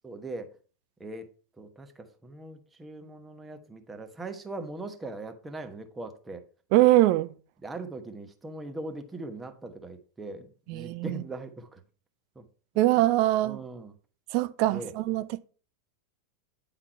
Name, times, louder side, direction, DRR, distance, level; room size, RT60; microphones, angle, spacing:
voice 1, 0.0-0.6 1.0-1.3 1.6-6.4 7.6-11.8 12.3-12.5 13.4-13.9 14.6-14.9, right 2 dB, 10° right, 1.1 m, -40 dB
voice 2, 6.7-7.3 10.7-11.2 12.8-13.6 14.3-15.4, right 16 dB, 45° right, 0.5 m, -23 dB
9.8 x 3.9 x 4.4 m
figure-of-eight pair, 90°, 0 cm